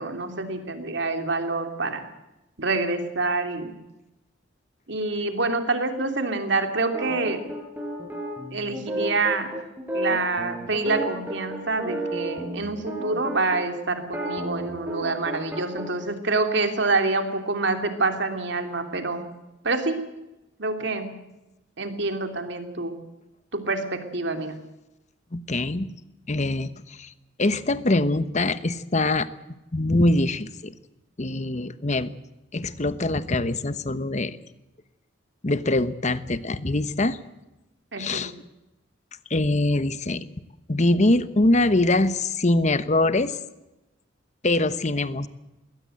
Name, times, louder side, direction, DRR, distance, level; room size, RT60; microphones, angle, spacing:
voice 1, 0.0-2.0 2.6-3.8 4.9-7.5 8.5-9.5 9.9-19.2 19.6-20.0 20.6-21.1 21.8-23.0 23.5-24.6 37.9-38.3, right 3 dB, 65° right, 6 dB, 2.9 m, -26 dB
sound 1, 6.9-13.6 14.0-15.9, right 1 dB, 10° right, 5.6 m, -31 dB
voice 2, 25.3-25.9 26.3-27.1 27.4-29.3 29.7-30.7 31.2-32.1 32.5-34.4 35.4-37.2 38.0-38.3 39.3-40.2 40.7-43.4 44.4-45.3, left 2 dB, 40° left, 13 dB, 1.1 m, -23 dB
21.5 x 18.0 x 7.8 m, 0.97 s
head